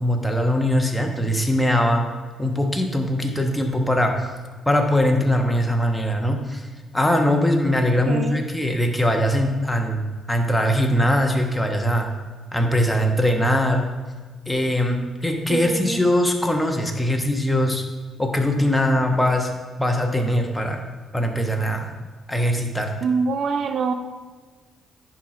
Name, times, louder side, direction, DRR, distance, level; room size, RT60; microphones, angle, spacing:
voice 1, 0.0-2.0 2.4-4.3 4.7-6.7 6.9-12.1 12.5-13.8 14.5-17.8 18.2-19.5 19.8-20.8 21.1-21.9 22.3-22.9, left 1 dB, 5° left, 3 dB, 1.2 m, -21 dB
voice 2, 8.1-8.4 15.5-16.0 23.0-23.9, right 5 dB, 60° right, 7 dB, 0.5 m, -24 dB
10.0 x 4.7 x 5.0 m, 1.4 s
cardioid pair, 90°, 0 cm